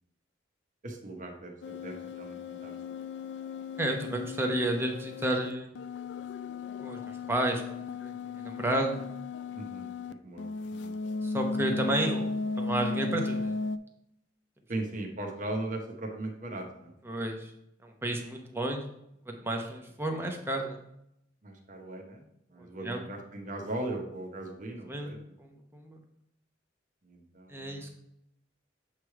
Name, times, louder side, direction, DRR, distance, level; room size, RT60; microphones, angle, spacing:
voice 1, 0.8-2.7 9.5-9.9 10.2-10.9 14.7-16.9 21.4-22.2 22.5-25.3 27.0-27.9, right 2 dB, 45° right, 2 dB, 1.0 m, -38 dB
sound 1, 1.6-10.1 10.4-13.8, left 3 dB, 65° left, 0.3 m, -36 dB
voice 2, 3.8-5.7 6.8-7.0 7.3-9.0 11.2-12.3 12.6-13.5 17.1-17.5 17.8-18.8 19.3-20.8 22.8-23.0 24.9-26.0 27.5-27.9, right 1 dB, 10° right, 2 dB, 0.8 m, -32 dB
7.5 x 3.2 x 4.7 m, 0.78 s
head